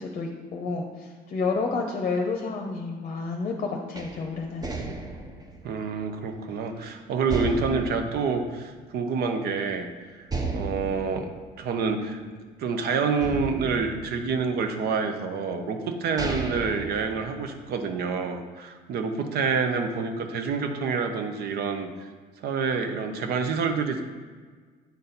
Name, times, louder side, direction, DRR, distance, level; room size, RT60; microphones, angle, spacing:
voice 1, 0.0-4.7, left 4 dB, 40° left, 2 dB, 0.7 m, -30 dB
sound 1, 4.0-6.8 7.3-9.2 9.6-9.7 10.3-12.7 13.2-14.8 15.5-15.6 16.0-17.8, right 3 dB, 20° right, 0.7 m, -35 dB
voice 2, 5.6-9.9 10.1-11.3 11.6-12.2 12.6-21.9 22.4-24.1, right 5 dB, 70° right, 6 dB, 0.8 m, -27 dB
8.2 x 4.1 x 4.0 m, 1.5 s
cardioid pair, 110°, 17 cm